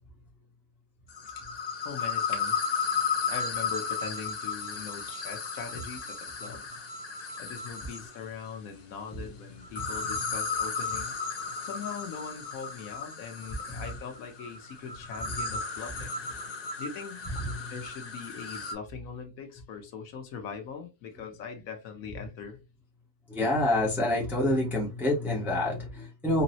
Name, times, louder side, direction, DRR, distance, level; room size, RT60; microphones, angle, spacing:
sound 1, 1.1-8.2 9.6-18.7, left 5 dB, 65° left, 0.4 m, -34 dB
voice 1, 1.8-2.7 3.3-6.7 7.4-16.2 16.8-17.3 17.7-22.6, left 6 dB, 85° left, 1.2 m, -41 dB
voice 2, 17.4-17.7 23.3-26.4, left 1 dB, ahead, 0.7 m, -28 dB
3.7 x 2.0 x 2.6 m
omnidirectional pair, 1.4 m